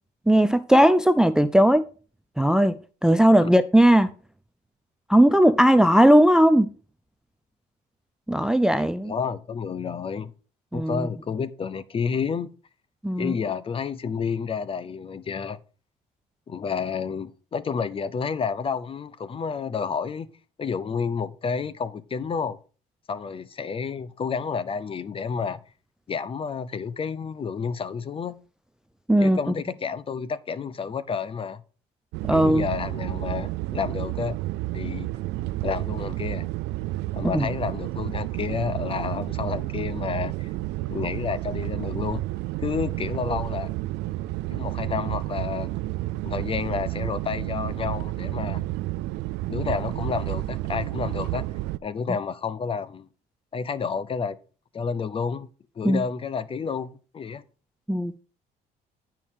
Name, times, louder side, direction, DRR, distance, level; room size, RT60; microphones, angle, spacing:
voice 1, 0.3-1.8 2.4-2.8 3.0-4.1 5.1-6.7 8.3-9.1 10.7-11.1 13.0-13.3 29.1-29.4 32.3-32.6 37.3-37.5 55.8-56.0 57.9-58.1, right 1 dB, 5° right, 0.4 m, -18 dB
voice 2, 8.8-10.3 10.7-12.5 13.2-15.6 16.5-20.3 20.6-22.6 23.1-25.6 26.1-28.4 29.2-31.6 32.3-34.4 34.7-35.1 35.6-36.5 37.1-40.5 40.9-42.2 42.6-43.7 44.5-45.7 46.2-48.6 49.5-51.5 51.8-53.1 53.5-54.4 54.7-55.5 55.8-57.4, left 6 dB, 35° left, 0.7 m, -30 dB
sound 1, 32.1-51.8, right 18 dB, 85° right, 0.4 m, -30 dB
9.8 x 4.7 x 5.5 m
cardioid pair, 110°, 17 cm